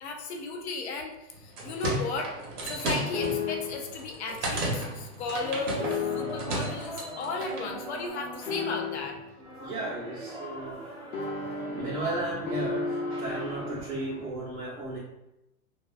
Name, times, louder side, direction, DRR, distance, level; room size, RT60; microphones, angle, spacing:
voice 1, 0.0-2.3 2.6-9.2, left 3 dB, 50° left, 2 dB, 0.5 m, -35 dB
sound 1, 1.3-7.7, right 1 dB, 85° right, 1.0 m, -34 dB
sound 2, 3.1-3.9 5.8-6.6 8.5-9.3 11.1-13.8, left 5 dB, 80° left, 0.8 m, -33 dB
voice 2, 5.0-5.6 6.1-6.8 9.6-10.8 11.5-15.0, right 2 dB, 55° right, -10 dB, 0.9 m, -36 dB
sound 3, 5.4-14.3, equal, 15° right, 0.4 m, -42 dB
2.5 x 2.3 x 2.3 m, 0.89 s
supercardioid pair, 160°, 45 cm